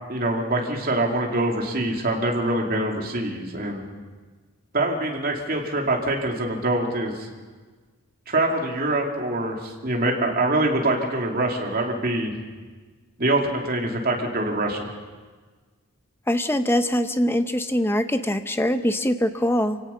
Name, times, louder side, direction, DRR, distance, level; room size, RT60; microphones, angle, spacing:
voice 1, 0.1-3.8 4.7-7.3 8.3-12.3 13.2-14.9, right 2 dB, 40° right, 0 dB, 2.7 m, -24 dB
voice 2, 16.3-19.8, equal, 10° left, 8 dB, 0.7 m, -23 dB
27.0 x 17.0 x 5.7 m, 1.4 s
head